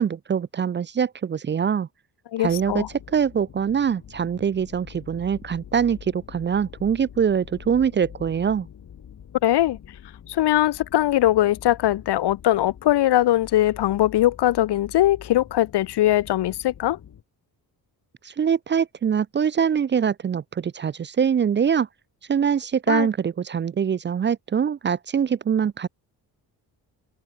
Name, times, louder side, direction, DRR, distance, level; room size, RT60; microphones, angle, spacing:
voice 1, 0.0-1.9 2.4-8.7 18.2-21.9 22.3-25.9, right 7 dB, 30° right, 0.4 m, -23 dB
voice 2, 2.3-2.9 9.4-9.8 10.3-17.0 22.9-23.1, left 14 dB, 90° left, 1.2 m, -21 dB
sound 1, 2.4-17.2, left 9 dB, 50° left, 4.7 m, -45 dB
wide cardioid pair, 180°, 39 cm